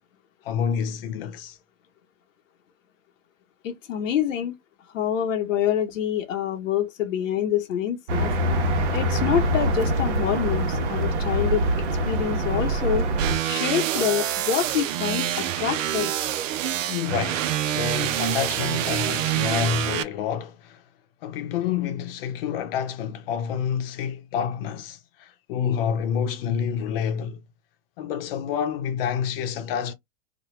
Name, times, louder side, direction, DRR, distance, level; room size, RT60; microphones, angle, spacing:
voice 1, 0.4-1.6 16.9-20.8 21.2-27.4 28.0-29.9, left 8 dB, 50° left, 0.8 m, -28 dB
voice 2, 3.6-4.6 4.9-8.3 8.9-11.7 12.0-13.1 13.4-16.1, left 9 dB, 85° left, 0.9 m, -26 dB
sound 1, 8.1-13.4, right 1 dB, 65° right, 1.0 m, -24 dB
sound 2, 13.2-20.0, right 12 dB, 80° right, 0.6 m, -26 dB
3.1 x 2.2 x 3.1 m
hypercardioid pair, 145°, 38 cm